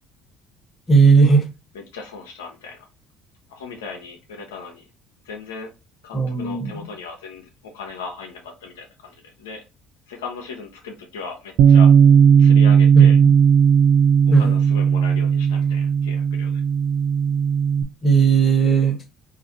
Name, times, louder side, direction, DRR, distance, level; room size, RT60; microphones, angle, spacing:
voice 1, 0.9-1.4 6.1-6.9 12.9-13.3 14.3-14.5 18.0-19.0, right 5 dB, 30° left, 1.1 m, -16 dB
voice 2, 1.7-2.8 3.5-4.9 5.2-5.7 6.0-7.5 7.7-9.6 10.1-11.9 12.4-13.2 14.3-16.6, left 5 dB, 90° left, 0.6 m, -37 dB
Bass guitar, 11.6-17.8, right 7 dB, 70° right, 0.3 m, -15 dB
2.5 x 2.4 x 3.9 m
hypercardioid pair, 70°, 0 cm